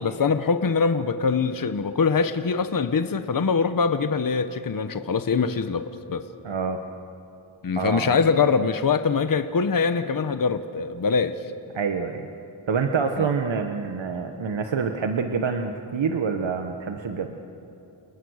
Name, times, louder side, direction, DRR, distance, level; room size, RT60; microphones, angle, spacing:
voice 1, 0.0-6.2 7.6-11.4 13.2-13.3, left 5 dB, 40° left, 10 dB, 1.0 m, -23 dB
voice 2, 6.4-6.8 7.8-8.2 11.7-12.3 12.7-17.3, right 5 dB, 65° right, 5 dB, 1.4 m, -26 dB
30.0 x 29.0 x 6.5 m, 2.9 s
wide cardioid pair, 145°, 49 cm